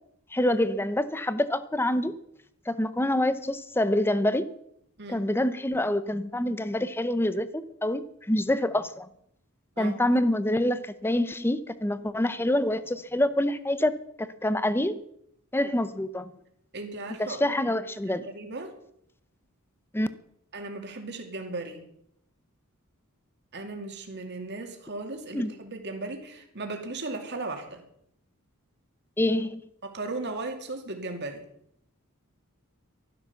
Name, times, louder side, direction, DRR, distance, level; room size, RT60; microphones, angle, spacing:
voice 1, 0.3-2.1 2.7-4.5 5.1-9.1 9.8-15.0 15.5-16.3 17.2-18.3 19.9-20.1 25.3-25.5 29.2-29.6, left 1 dB, 10° left, 0.7 m, -26 dB
voice 2, 16.7-17.9 18.2-18.7 20.5-21.8 23.5-27.8 29.8-31.4, right 2 dB, 55° right, 2.4 m, -36 dB
12.5 x 12.0 x 7.0 m
head